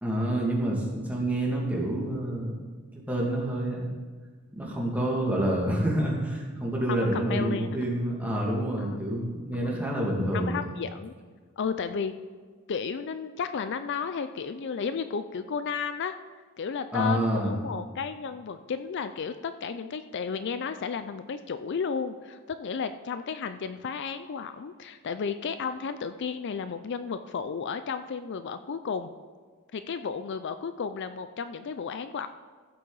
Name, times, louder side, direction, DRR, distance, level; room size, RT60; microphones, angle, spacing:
voice 1, 0.0-2.5 3.1-3.9 4.5-10.6 16.9-17.6, right 1 dB, 5° right, -3 dB, 2.1 m, -28 dB
voice 2, 6.9-7.8 8.8-9.1 9.5-9.9 10.3-11.1 11.6-12.1 12.7-16.2 16.6-29.1 29.7-32.3, left 6 dB, 55° left, 10 dB, 0.4 m, -33 dB
15.0 x 7.6 x 4.0 m, 1.5 s
head